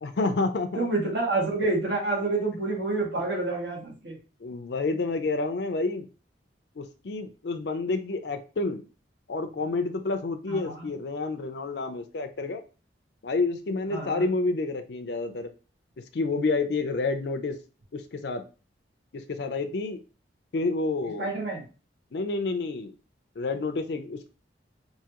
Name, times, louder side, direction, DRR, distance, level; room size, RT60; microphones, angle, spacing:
voice 1, 0.0-0.9 4.4-6.1 6.8-8.8 9.3-12.6 13.2-15.5 16.1-17.6 17.9-18.4 19.1-20.0 20.5-21.3 22.1-22.9 23.4-24.3, left 3 dB, 65° left, 7 dB, 0.5 m, -29 dB
voice 2, 0.8-4.2 10.5-10.9 13.9-14.2 21.2-21.6, right 2 dB, 70° right, -2 dB, 1.8 m, -28 dB
4.7 x 2.7 x 2.9 m, 0.34 s
head